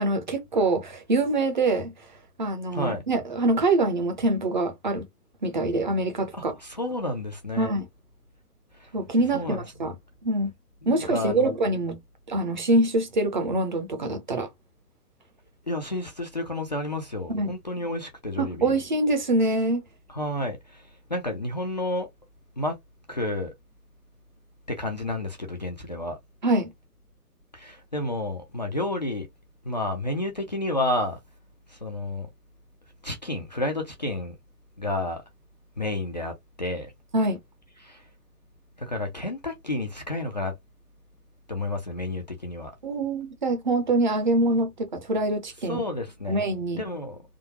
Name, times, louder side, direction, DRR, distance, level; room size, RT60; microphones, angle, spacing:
voice 1, 0.0-2.1 2.4-5.1 5.4-6.5 7.6-7.8 8.9-9.9 10.2-10.5 10.9-12.0 12.3-14.5 17.3-17.5 18.4-19.8 26.4-26.7 37.1-37.4 42.8-45.8 46.3-46.8, right 2 dB, 30° right, 0.7 m, -24 dB
voice 2, 2.7-3.1 6.6-7.7 8.7-8.9 9.3-9.6 10.8-11.5 15.7-18.8 20.1-22.1 22.6-22.8 23.1-23.5 24.7-26.2 27.5-29.3 29.6-31.2 31.7-32.3 33.0-34.4 34.8-35.2 35.8-36.9 37.8-38.1 38.8-40.5 41.5-42.7 45.7-46.4 46.8-47.2, left 1 dB, 30° left, 0.5 m, -30 dB
3.6 x 2.2 x 2.8 m
figure-of-eight pair, 130°, 47 cm